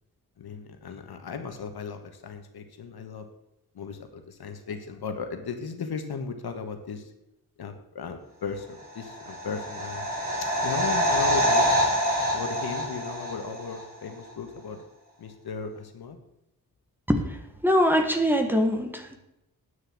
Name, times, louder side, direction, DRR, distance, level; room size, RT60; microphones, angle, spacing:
voice 1, 0.4-3.3 3.7-7.1 7.6-10.1 10.4-11.9 12.3-14.8 15.2-16.2, left 5 dB, 85° left, 7 dB, 1.7 m, -36 dB
sound 1, 9.0-13.8 14.1-14.2, equal, 25° right, 5.0 m, -26 dB
voice 2, 17.1-19.2, equal, 5° right, 5 dB, 1.4 m, -23 dB
9.6 x 6.6 x 7.8 m, 0.89 s
wide cardioid pair, 125°, 37 cm